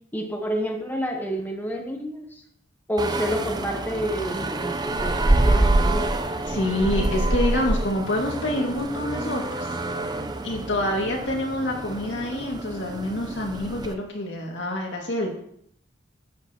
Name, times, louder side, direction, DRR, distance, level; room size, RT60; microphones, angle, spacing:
voice 1, 0.1-2.4 2.9-5.2 5.4-6.1, equal, 10° left, 2 dB, 1.0 m, -29 dB
sound 1, 3.0-13.9, right 2 dB, 25° right, 0.6 m, -26 dB
voice 2, 6.5-9.7 10.4-15.4, left 1 dB, 85° left, -1 dB, 2.1 m, -27 dB
11.0 x 7.7 x 2.9 m, 0.69 s
head